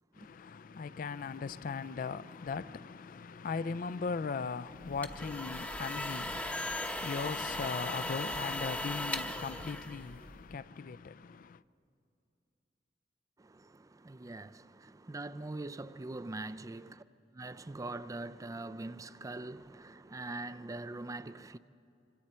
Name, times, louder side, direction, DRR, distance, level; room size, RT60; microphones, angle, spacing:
voice 1, 0.1-11.6, left 5 dB, 50° left, 0.4 m, -39 dB
sound 1, 4.8-10.5, left 1 dB, 10° left, 0.8 m, -38 dB
voice 2, 13.4-17.0 17.3-21.6, right 2 dB, 20° right, 0.4 m, -43 dB
26.0 x 26.0 x 4.4 m
head